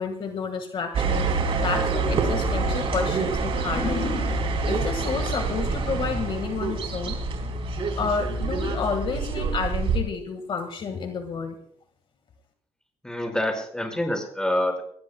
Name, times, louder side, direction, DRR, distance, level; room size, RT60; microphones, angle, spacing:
voice 1, 0.0-7.2 8.0-11.6, left 5 dB, 50° left, 6 dB, 1.7 m, -30 dB
sound 1, 0.9-10.0, right 4 dB, 55° right, 3.9 m, -26 dB
voice 2, 13.0-14.8, left 1 dB, 5° left, 3 dB, 5.2 m, -26 dB
23.0 x 19.5 x 2.3 m, 0.65 s
cardioid pair, 105°, 11 cm